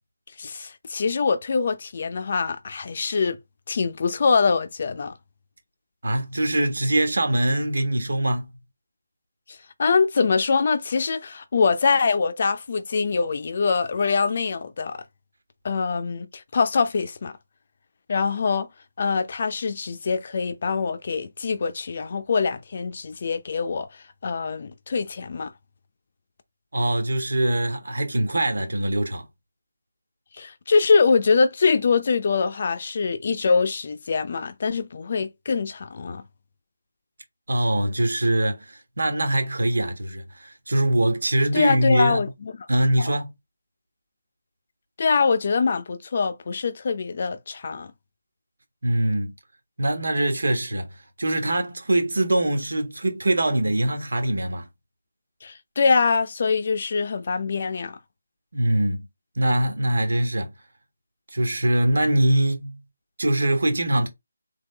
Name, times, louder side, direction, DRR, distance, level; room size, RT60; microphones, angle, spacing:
voice 1, 0.4-3.4 3.7-5.1 9.5-15.0 15.6-17.3 18.1-18.7 19.0-23.9 24.2-25.5 30.4-36.2 41.5-42.5 43.0-43.1 45.0-47.9 55.4-58.0, left 5 dB, 45° left, 0.6 m, -23 dB
voice 2, 6.0-8.5 26.7-29.2 37.5-42.2 42.7-43.3 48.8-49.3 49.8-50.9 51.2-54.7 58.5-59.0 59.3-60.5 61.3-62.8 63.2-64.1, right 1 dB, 70° right, 1.6 m, -23 dB
3.6 x 3.5 x 3.4 m
figure-of-eight pair, 160°, 0 cm